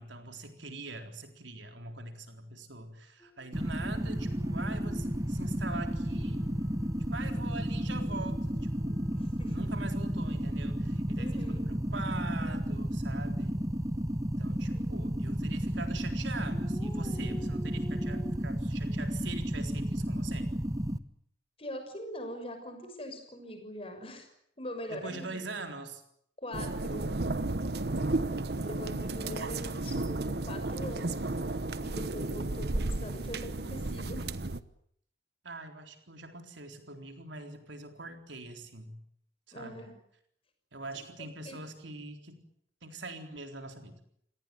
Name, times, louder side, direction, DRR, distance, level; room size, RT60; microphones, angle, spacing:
voice 1, 0.0-6.4 7.1-9.2 9.4-13.6 14.4-20.5 24.9-26.0 35.4-39.0 39.5-39.9 40.7-42.4 42.8-44.0, right 3 dB, 80° right, 5 dB, 3.9 m, -43 dB
sound 1, 3.2-15.2 16.3-18.3, left 1 dB, 10° left, 5.2 m, -51 dB
sound 2, 3.5-21.0, equal, 20° right, 1.0 m, -32 dB
voice 2, 9.1-9.7 11.2-11.6 14.7-15.2 21.6-24.3 24.6-25.4 26.4-27.1 28.6-31.2 31.8-34.3 39.5-39.9 41.4-41.6, equal, 30° left, 6 dB, 6.3 m, -42 dB
sound 3, 26.5-34.6, right 2 dB, 60° right, 1.0 m, -33 dB
28.5 x 18.5 x 9.2 m, 0.71 s
head